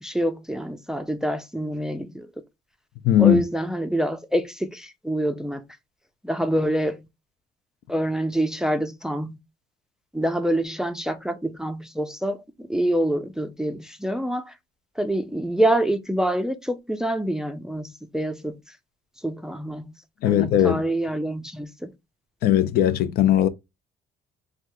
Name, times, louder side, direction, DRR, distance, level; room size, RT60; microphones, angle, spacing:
voice 1, 0.0-2.3 3.2-5.6 6.2-7.0 7.9-9.4 10.1-14.5 15.0-18.6 19.2-19.8 20.2-21.9, right 1 dB, 5° right, 0.4 m, -26 dB
voice 2, 3.0-3.4 20.2-20.8 22.4-23.5, left 12 dB, 65° left, 0.4 m, -19 dB
3.4 x 2.3 x 2.6 m
cardioid pair, 110°, 17 cm